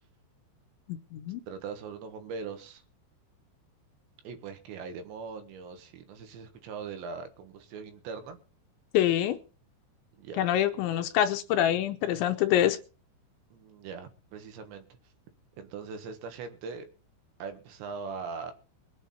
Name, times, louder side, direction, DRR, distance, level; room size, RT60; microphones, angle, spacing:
voice 1, 1.5-2.8 4.2-8.4 10.2-10.5 13.5-14.9 15.6-16.9 17.4-18.5, right 5 dB, 70° right, 3.4 m, -40 dB
voice 2, 8.9-9.4 10.4-12.8, left 11 dB, 80° left, 2.9 m, -25 dB
22.5 x 8.1 x 4.2 m
omnidirectional pair, 5.7 m